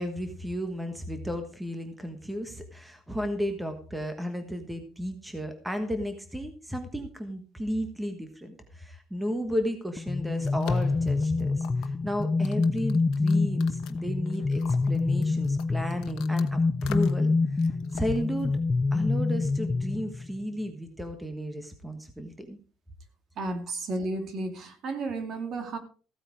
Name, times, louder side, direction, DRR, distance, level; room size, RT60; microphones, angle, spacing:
voice 1, 0.0-18.6 18.9-22.6, equal, 5° right, 7 dB, 1.4 m, -34 dB
sound 1, 10.0-16.5 16.8-17.3 17.6-18.6, left 12 dB, 70° left, 1.3 m, -45 dB
sound 2, 10.0-20.4, left 3 dB, 20° left, 0.5 m, -26 dB
voice 2, 23.4-25.8, right 2 dB, 45° right, 7 dB, 2.5 m, -33 dB
15.5 x 8.9 x 4.8 m, 0.39 s
cardioid pair, 155°, 0 cm